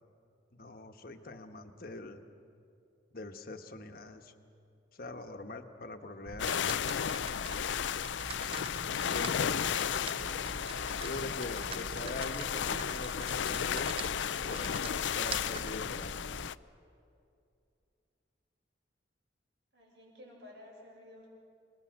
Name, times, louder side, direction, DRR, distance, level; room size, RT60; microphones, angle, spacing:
voice 1, 0.5-2.2 3.1-4.3 4.9-6.5 9.0-9.7 11.0-16.2, left 2 dB, 50° left, 7 dB, 1.2 m, -43 dB
sound 1, 6.3-16.5, right 4 dB, 30° right, 0.5 m, -44 dB
sound 2, 6.4-16.5, left 8 dB, 75° left, 0.4 m, -34 dB
voice 2, 19.7-21.3, left 1 dB, 65° right, -2 dB, 6.7 m, -54 dB
28.0 x 19.5 x 6.4 m, 2.6 s
head